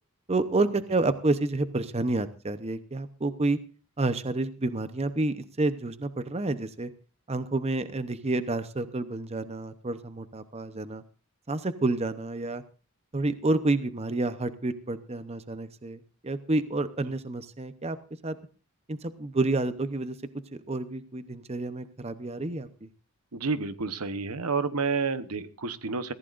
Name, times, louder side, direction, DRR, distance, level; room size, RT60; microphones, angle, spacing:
voice 1, 0.3-3.6 4.0-6.9 7.3-11.0 11.5-12.6 13.1-18.0 18.2-18.4 18.9-20.2 20.5-22.9, right 2 dB, 30° right, 12 dB, 0.8 m, -29 dB
voice 2, 23.3-26.1, right 4 dB, 85° right, 12 dB, 1.0 m, -30 dB
22.5 x 15.0 x 2.5 m, 0.36 s
head